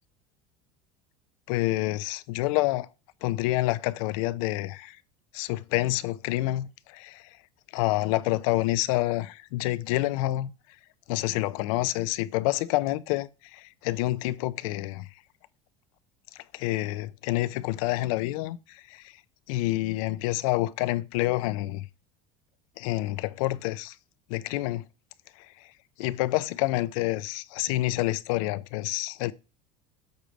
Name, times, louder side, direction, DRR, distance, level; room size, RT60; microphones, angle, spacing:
voice 1, 1.5-2.9 3.2-5.0 5.3-7.3 7.7-10.5 11.1-15.1 16.3-19.2 19.5-21.9 22.8-24.0 24.3-24.8 25.4-25.7 26.0-29.3, left 17 dB, 80° left, 0.5 m, -28 dB
8.0 x 3.3 x 5.1 m
supercardioid pair, 120°, 18 cm